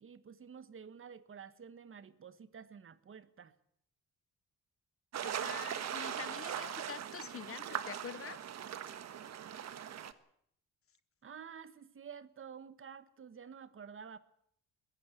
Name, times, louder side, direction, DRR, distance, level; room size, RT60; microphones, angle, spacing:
voice 1, 0.0-3.5 11.2-14.2, right 7 dB, 45° right, 1.4 m, -50 dB
sound 1, 5.1-10.1, right 9 dB, 60° right, 1.4 m, -40 dB
voice 2, 5.2-8.4, left 8 dB, 45° left, 1.0 m, -46 dB
21.5 x 15.0 x 8.4 m
cardioid pair, 90°, 30 cm